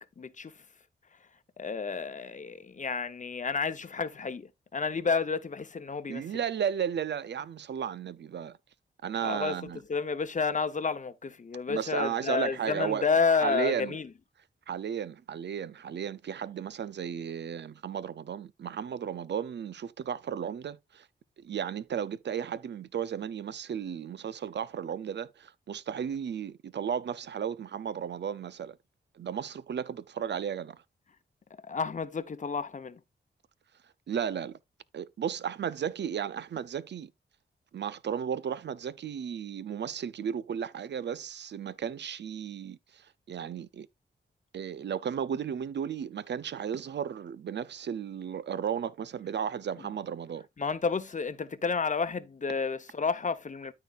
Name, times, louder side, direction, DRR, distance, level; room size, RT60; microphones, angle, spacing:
voice 1, 0.2-0.6 1.6-6.3 9.2-9.6 9.9-14.1 31.7-33.0 50.6-53.7, left 5 dB, 40° left, 0.9 m, -30 dB
voice 2, 6.1-8.6 9.0-9.8 11.7-13.0 13.4-14.0 14.7-21.1 21.4-28.8 29.1-30.8 34.1-34.6 34.9-37.1 37.7-43.9 44.5-50.5, right 8 dB, 65° right, 0.6 m, -34 dB
13.0 x 4.7 x 2.5 m
cardioid pair, 70°, 19 cm